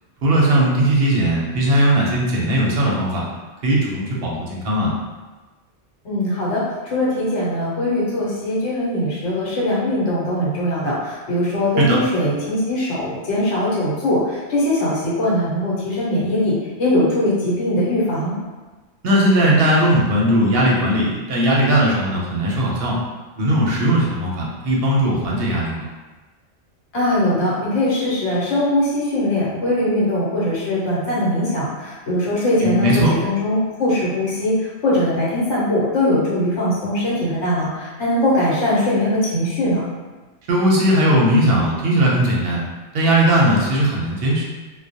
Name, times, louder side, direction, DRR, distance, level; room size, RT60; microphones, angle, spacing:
voice 1, 0.2-3.2 3.6-4.9 11.8-12.0 19.0-22.9 23.4-25.9 32.6-33.1 40.5-42.6 42.9-44.4, right 1 dB, 60° right, -3 dB, 0.7 m, -18 dB
voice 2, 6.0-18.3 26.9-39.8, left 1 dB, 70° left, -6 dB, 1.1 m, -21 dB
2.3 x 2.1 x 2.7 m, 1.2 s
omnidirectional pair, 1.2 m